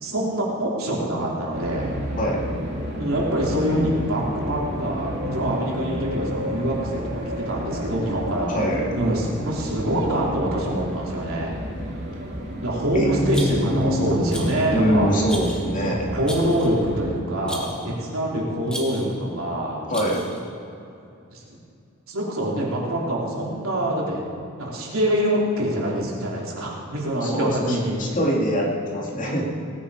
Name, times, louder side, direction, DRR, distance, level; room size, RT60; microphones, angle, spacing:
voice 1, 0.0-1.9 3.0-8.5 9.0-11.6 12.6-15.1 15.8-19.8 21.3-21.4 22.1-24.2 24.6-28.2, right 1 dB, 80° right, -4 dB, 3.3 m, -25 dB
sound 1, 1.5-17.1, equal, 55° right, 2.7 m, -31 dB
voice 2, 8.5-8.9 12.9-14.2 14.7-16.0 19.9-20.2 27.2-29.5, equal, 40° left, -2 dB, 2.5 m, -24 dB
Rattle, 13.3-13.8 14.3-14.7 15.3-15.7 16.3-16.8 17.5-17.9 18.7-19.2 19.9-20.4, equal, 5° left, 1.8 m, -36 dB
18.5 x 9.7 x 4.9 m, 2.6 s
head